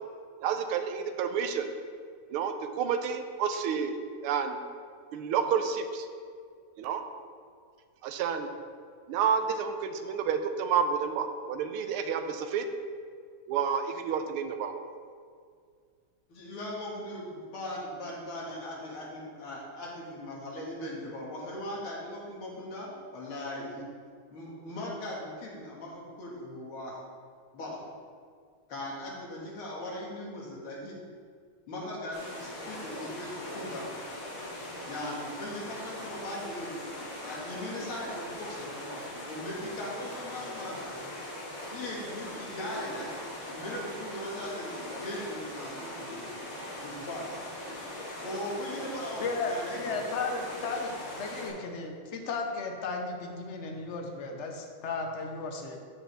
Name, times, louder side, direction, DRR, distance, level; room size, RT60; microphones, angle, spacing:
voice 1, 0.4-1.7 2.3-4.6 5.1-6.1 6.8-7.0 8.0-8.5 9.1-12.7 13.5-14.8, right 7 dB, 90° right, 7 dB, 1.6 m, -30 dB
voice 2, 16.3-23.8 24.3-27.0 27.5-27.8 28.7-31.0 31.7-33.9 34.9-36.9 37.2-40.9 41.7-43.1 43.5-46.3 46.8-47.3 48.2-50.1, left 1 dB, 75° left, -4 dB, 2.5 m, -39 dB
sound 1, 32.1-51.5, left 1 dB, 35° left, 2.7 m, -41 dB
voice 3, 49.2-55.8, left 4 dB, 55° left, 2 dB, 0.8 m, -35 dB
13.5 x 5.0 x 3.4 m, 2.1 s
omnidirectional pair, 2.4 m